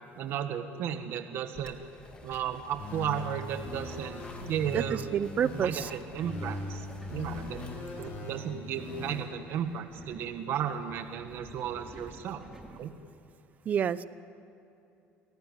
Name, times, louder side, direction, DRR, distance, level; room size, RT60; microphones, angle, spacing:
voice 1, 0.2-1.8 2.2-4.2 4.5-5.0 5.4-7.7 8.0-12.4 12.7-12.9, right 9 dB, 55° right, 7 dB, 1.6 m, -34 dB
sound 1, 1.5-8.2, left 3 dB, 20° left, 1.7 m, -51 dB
sound 2, 2.8-5.8 6.2-9.2, left 2 dB, 35° left, 7.8 m, -40 dB
voice 2, 4.7-5.9 13.7-14.0, right 8 dB, 35° right, 15 dB, 0.7 m, -28 dB
Subway metro underground, 5.7-13.3, right 1 dB, 10° right, 2.1 m, -53 dB
30.0 x 18.0 x 9.9 m, 2.7 s
cardioid pair, 155°, 5 cm